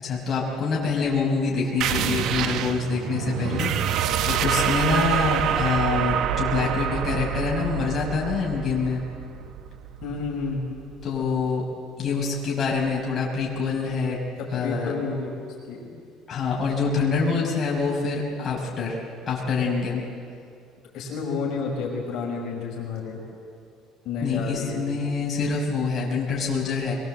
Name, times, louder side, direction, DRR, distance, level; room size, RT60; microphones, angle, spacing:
voice 1, 0.0-3.7 4.2-9.0 11.0-11.6 12.0-14.2 14.5-14.9 16.3-20.0 24.2-26.9, left 4 dB, 30° left, -3 dB, 5.9 m, -26 dB
sound 1, 1.8-11.0, right 9 dB, 60° right, 1.1 m, -26 dB
voice 2, 10.0-10.6 14.4-15.3 15.7-15.9 20.9-23.2 24.0-24.8, left 4 dB, 55° left, -1 dB, 5.5 m, -30 dB
23.5 x 23.0 x 8.0 m, 2.3 s
cardioid pair, 150°, 0 cm